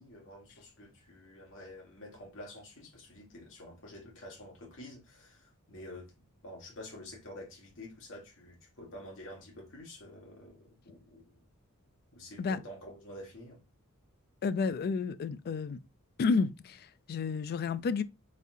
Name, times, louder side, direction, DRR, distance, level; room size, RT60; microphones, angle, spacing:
voice 1, 0.0-6.1 6.4-11.5 12.1-13.6, left 1 dB, 60° left, 1.6 m, -49 dB
voice 2, 14.4-15.8 16.2-18.0, left 4 dB, 45° left, 0.3 m, -31 dB
4.0 x 3.5 x 2.7 m
head